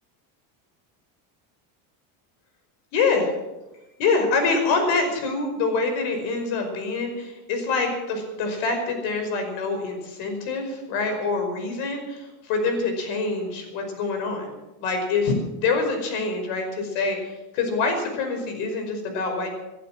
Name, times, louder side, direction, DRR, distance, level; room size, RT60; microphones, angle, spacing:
voice 1, 2.9-3.3 4.0-14.5 14.8-19.5, left 4 dB, 70° left, 5 dB, 5.4 m, -25 dB
19.5 x 12.0 x 6.2 m, 1.0 s
cardioid pair, 160°, 43 cm